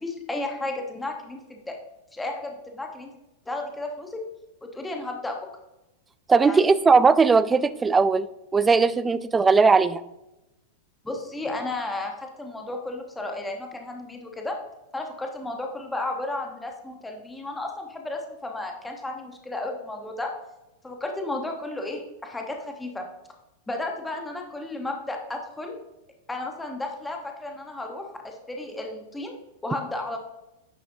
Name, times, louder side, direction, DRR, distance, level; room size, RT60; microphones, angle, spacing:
voice 1, 0.0-1.8 2.1-3.1 3.5-4.2 4.7-5.4 6.4-6.8 11.0-14.6 14.9-20.3 20.8-23.1 23.7-25.8 26.3-29.4 29.6-30.2, left 2 dB, 10° left, 2 dB, 1.0 m, -33 dB
voice 2, 6.3-8.3 8.5-10.0, right 4 dB, 15° right, 15 dB, 0.3 m, -18 dB
9.6 x 5.6 x 2.7 m, 0.96 s
hypercardioid pair, 135°, 0 cm